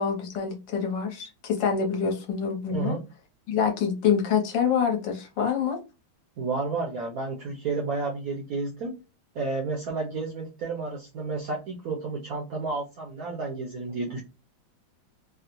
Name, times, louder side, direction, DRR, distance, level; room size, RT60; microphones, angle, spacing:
voice 1, 0.0-3.0 3.5-5.8, left 6 dB, 70° left, 3 dB, 1.4 m, -26 dB
voice 2, 2.7-3.0 6.4-8.9 9.3-14.2, right 3 dB, 70° right, -1 dB, 0.9 m, -31 dB
3.6 x 2.0 x 2.9 m, 0.28 s
omnidirectional pair, 2.2 m